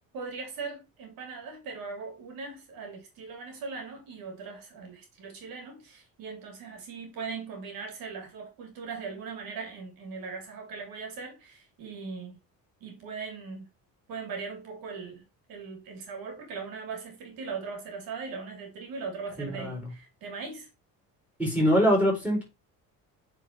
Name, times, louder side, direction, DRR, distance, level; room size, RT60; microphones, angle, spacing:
voice 1, 0.0-12.4 12.8-13.6 14.1-20.7, right 4 dB, 75° right, 3.0 m, -39 dB
voice 2, 19.4-19.9 21.4-22.4, equal, 5° right, 4.7 m, -24 dB
8.8 x 4.8 x 3.0 m
cardioid pair, 140°, 35 cm